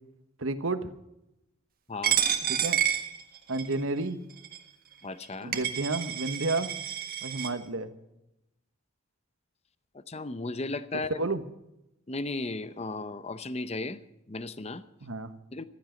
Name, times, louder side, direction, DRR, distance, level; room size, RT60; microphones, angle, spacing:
voice 1, 0.4-0.9 2.5-2.8 3.5-4.2 5.4-6.7 7.2-7.9 10.9-11.4 15.0-15.3, right 2 dB, 65° right, 10 dB, 1.2 m, -31 dB
voice 2, 1.9-2.2 5.0-5.6 9.9-11.1 12.1-14.8 15.5-15.6, left 3 dB, 30° left, 13 dB, 0.7 m, -35 dB
Coin (dropping), 2.0-3.8 4.4-4.6 5.2-5.3 5.5-7.5, right 9 dB, 40° right, 1.5 m, -29 dB
15.5 x 14.0 x 5.1 m, 0.88 s
head